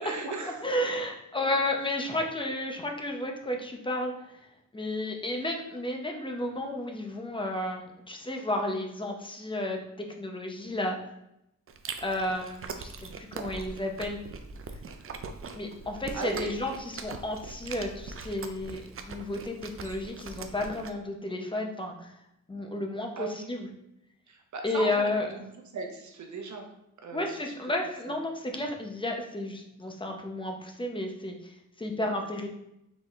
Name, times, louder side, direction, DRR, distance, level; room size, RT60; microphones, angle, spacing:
voice 1, 0.0-0.6 16.1-16.5 23.2-23.6 24.3-26.6 27.0-27.4 28.1-28.2 32.1-32.2, right 4 dB, 65° right, 3 dB, 0.9 m, -38 dB
voice 2, 0.6-4.4 4.7-9.8 10.2-11.0 12.0-14.2 15.5-18.8 19.1-22.1 22.5-23.7 24.6-25.3 27.1-32.5, left 1 dB, 15° left, 2 dB, 0.7 m, -32 dB
Chewing mastication, 11.7-20.9, right 4 dB, 45° right, 0.4 m, -41 dB
4.1 x 3.6 x 3.1 m, 0.83 s
wide cardioid pair, 95°, 31 cm